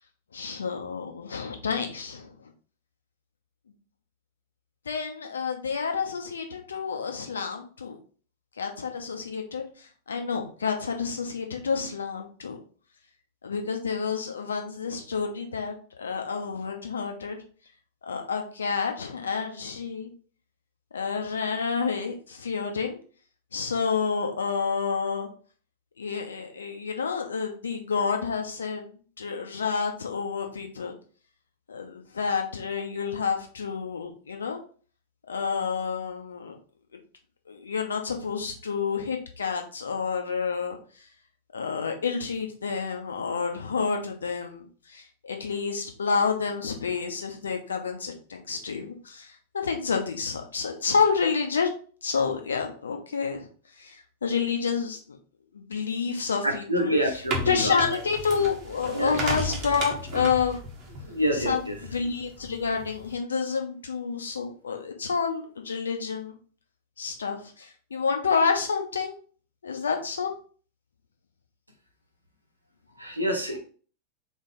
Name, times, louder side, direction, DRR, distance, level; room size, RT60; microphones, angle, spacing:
voice 1, 0.3-2.3 4.9-8.0 8.6-12.6 13.4-17.4 18.0-20.1 20.9-23.0 23.5-25.3 26.0-28.9 29.2-30.9 31.7-34.6 35.3-36.5 37.5-40.8 41.5-51.7 52.0-53.5 53.8-55.0 55.5-56.9 57.5-60.6 61.5-61.6 61.9-66.3 67.0-69.1 69.6-70.3, left 5 dB, 70° left, 4 dB, 0.8 m, -29 dB
voice 2, 56.4-58.0 58.9-59.2 61.0-61.8 73.0-73.6, equal, 85° right, 2 dB, 1.0 m, -27 dB
sound 1, 56.9-63.2, right 1 dB, 40° right, 1.3 m, -35 dB
4.1 x 3.4 x 3.8 m, 0.41 s
figure-of-eight pair, 90°, 0 cm